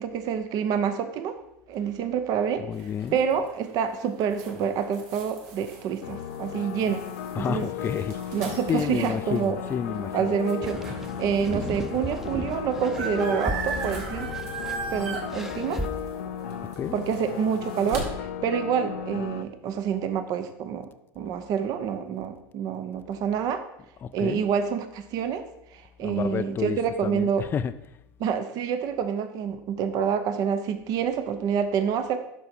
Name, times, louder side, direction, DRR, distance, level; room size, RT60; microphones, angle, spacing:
voice 1, 0.0-1.4 1.7-2.6 3.1-7.0 7.4-7.7 8.3-9.6 10.1-14.3 14.9-15.8 16.9-20.9 21.2-23.6 24.1-25.4 25.7-27.4 28.2-32.2, right 7 dB, 50° right, 0.8 m, -27 dB
voice 2, 2.6-3.2 7.3-8.4 8.7-10.3 16.8-17.0 24.0-24.5 26.0-27.7, left 8 dB, 25° left, 0.4 m, -30 dB
sound 1, 2.7-11.2 11.7-11.8 12.0-18.0, right 4 dB, 80° right, 2.1 m, -39 dB
sound 2, 6.0-19.4, left 9 dB, 85° left, 0.6 m, -36 dB
sound 3, 10.6-15.9, right 1 dB, 5° right, 0.7 m, -35 dB
11.5 x 4.8 x 4.4 m
supercardioid pair, 110°, 8 cm